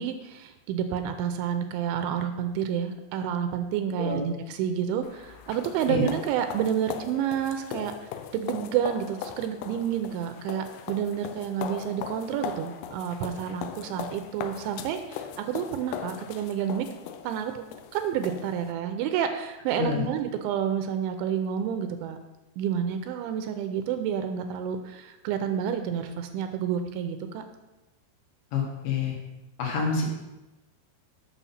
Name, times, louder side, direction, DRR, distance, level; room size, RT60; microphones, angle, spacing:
voice 1, 0.0-16.9 17.2-17.6 17.9-22.2 22.6-27.4, right 9 dB, 85° right, 7 dB, 2.8 m, -29 dB
sound 1, 5.0-18.7, left 9 dB, 85° left, 2.4 m, -39 dB
voice 2, 28.5-29.2 29.6-30.1, left 5 dB, 70° left, -1 dB, 3.8 m, -27 dB
8.3 x 6.2 x 5.7 m, 1.0 s
omnidirectional pair, 5.5 m